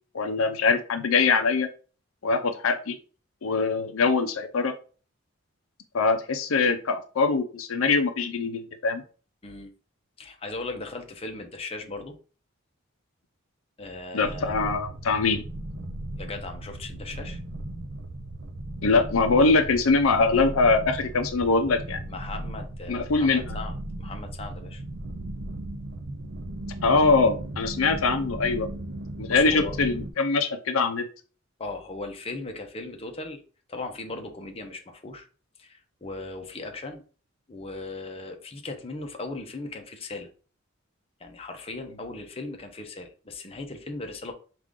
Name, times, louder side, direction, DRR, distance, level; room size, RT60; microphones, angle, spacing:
voice 1, 0.1-1.7 2.2-3.0 3.4-4.7 5.9-9.0 14.1-15.4 18.8-22.0 22.9-23.6 26.8-28.7 29.2-31.0, left 4 dB, 80° left, 8 dB, 0.6 m, -23 dB
voice 2, 10.2-12.1 13.8-14.5 16.2-17.4 22.1-23.7 24.0-24.8 29.3-29.7 31.6-33.4 33.7-35.3 35.6-37.0 37.5-40.3 41.2-44.3, left 2 dB, 30° left, 4 dB, 0.7 m, -38 dB
sound 1, 14.2-30.1, right 1 dB, 55° right, 0.6 m, -36 dB
4.8 x 2.5 x 3.6 m, 0.38 s
head